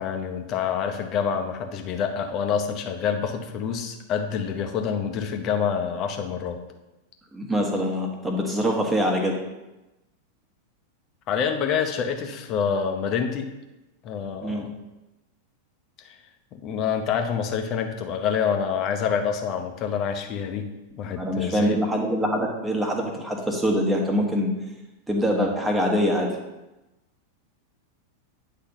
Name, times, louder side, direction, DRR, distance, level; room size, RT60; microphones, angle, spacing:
voice 1, 0.0-6.6 11.3-13.5 14.0-14.7 16.0-16.1 16.5-20.7 21.0-21.8, left 7 dB, 35° left, 5 dB, 0.8 m, -27 dB
voice 2, 7.3-9.3 14.4-14.6 21.2-24.5 25.1-26.3, equal, 10° right, 1 dB, 1.3 m, -24 dB
9.5 x 3.4 x 5.6 m, 1.0 s
figure-of-eight pair, 90°, 0 cm